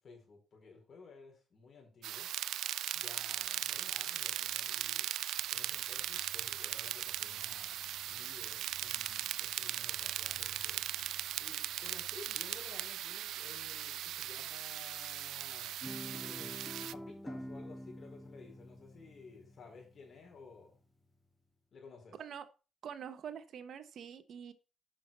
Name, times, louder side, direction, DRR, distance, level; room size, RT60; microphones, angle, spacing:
voice 1, 0.0-2.3 2.9-5.1 5.5-10.8 11.4-16.6 16.9-20.8 21.7-22.2, left 4 dB, 50° left, 4.6 m, -55 dB
sound 1, 2.0-16.9, right 12 dB, 80° right, 0.3 m, -38 dB
sound 2, 4.9-21.6, left 2 dB, 20° left, 1.5 m, -64 dB
Guitar, 15.8-20.2, equal, ahead, 0.3 m, -47 dB
voice 2, 22.8-24.5, right 8 dB, 65° right, 0.9 m, -45 dB
8.3 x 6.0 x 5.3 m
cardioid pair, 90°, 0 cm